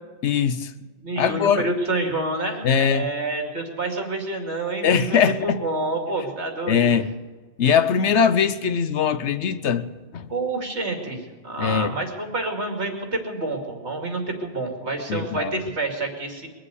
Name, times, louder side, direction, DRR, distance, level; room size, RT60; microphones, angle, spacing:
voice 1, 0.2-0.7 1.2-1.7 2.6-3.1 4.8-5.6 6.7-7.1 7.6-9.9 10.1-10.3 11.6-12.0 15.1-15.5, left 7 dB, 85° left, 1.2 m, -21 dB
voice 2, 1.0-6.8 10.3-16.5, right 2 dB, 75° right, 2.8 m, -28 dB
22.0 x 7.7 x 8.2 m
omnidirectional pair, 1.2 m